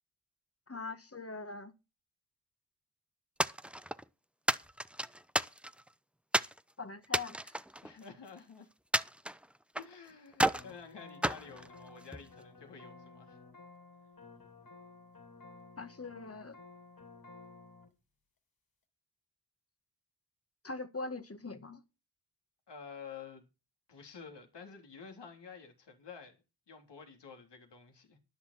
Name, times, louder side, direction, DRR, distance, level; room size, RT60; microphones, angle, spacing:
voice 1, 0.7-1.7 6.8-7.5 15.8-16.6 20.6-21.8, left 3 dB, 35° left, 1.7 m, -42 dB
sound 1, 3.4-4.0 4.5-5.9 6.3-6.6 7.0-8.4 8.9-9.9 10.3-10.7 11.2-12.3, right 1 dB, 5° right, 0.7 m, -32 dB
voice 2, 7.8-8.7 9.8-13.4 22.7-23.5 23.9-26.4 26.7-28.2, left 6 dB, 75° left, 3.5 m, -50 dB
sound 2, 10.5-17.9, left 3 dB, 55° left, 3.5 m, -54 dB
13.0 x 10.0 x 4.3 m
cardioid pair, 45°, 42 cm